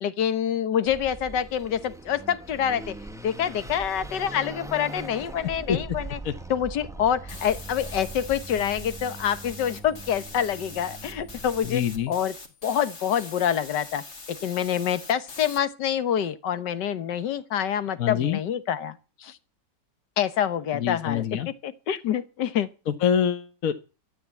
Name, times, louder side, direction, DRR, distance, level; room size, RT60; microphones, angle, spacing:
voice 1, 0.0-3.0 3.2-6.2 6.5-11.8 12.1-12.3 12.6-14.0 14.3-19.4 20.2-21.2 21.6-22.7, left 9 dB, 80° left, 1.7 m, -26 dB
Car passing by / Accelerating revving vroom, 0.8-12.1, right 2 dB, 5° right, 0.4 m, -41 dB
sound 1, 7.3-15.6, left 3 dB, 40° left, 2.4 m, -43 dB
voice 2, 11.6-12.1 18.0-18.4 20.7-21.5 22.9-23.7, left 8 dB, 55° left, 1.4 m, -25 dB
13.0 x 9.2 x 8.3 m
omnidirectional pair, 1.9 m